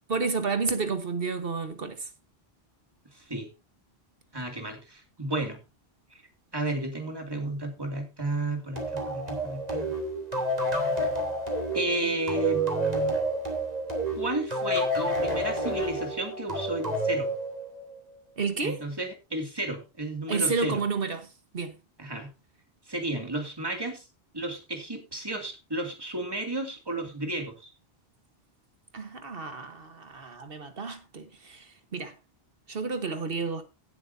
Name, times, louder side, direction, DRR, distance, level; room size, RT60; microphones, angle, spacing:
voice 1, 0.1-2.1 18.4-18.8 20.3-21.3 21.5-21.8 28.9-32.1 32.7-33.6, right 4 dB, 65° right, 1.4 m, -31 dB
voice 2, 3.1-3.5 4.3-5.6 6.1-6.2 6.5-9.9 11.7-13.2 14.1-17.3 18.6-20.8 22.0-22.3 22.9-24.1 24.3-27.7, right 2 dB, 25° right, 2.4 m, -33 dB
sound 1, 8.8-18.0, right 1 dB, 40° right, 3.4 m, -29 dB
17.5 x 7.8 x 2.7 m
omnidirectional pair, 1.0 m